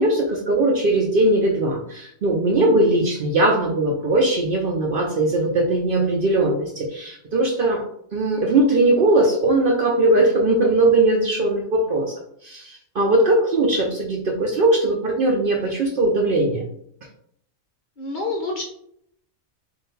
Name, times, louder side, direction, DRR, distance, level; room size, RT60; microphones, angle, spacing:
voice 1, 0.0-7.8 8.1-16.6, right 2 dB, 55° right, 0 dB, 0.6 m, -20 dB
voice 2, 18.0-18.6, left 3 dB, 50° left, 0 dB, 0.7 m, -27 dB
3.7 x 2.5 x 4.0 m, 0.70 s
omnidirectional pair, 1.3 m